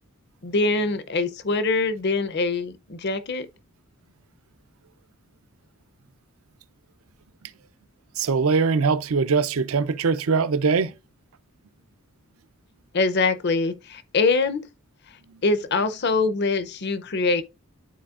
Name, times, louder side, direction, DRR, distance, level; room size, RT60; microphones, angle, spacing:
voice 1, 0.4-3.5 12.9-14.7 15.4-17.4, left 3 dB, 50° left, 0.6 m, -23 dB
voice 2, 8.2-10.9, right 5 dB, 70° right, 0.5 m, -22 dB
12.5 x 4.1 x 2.4 m
head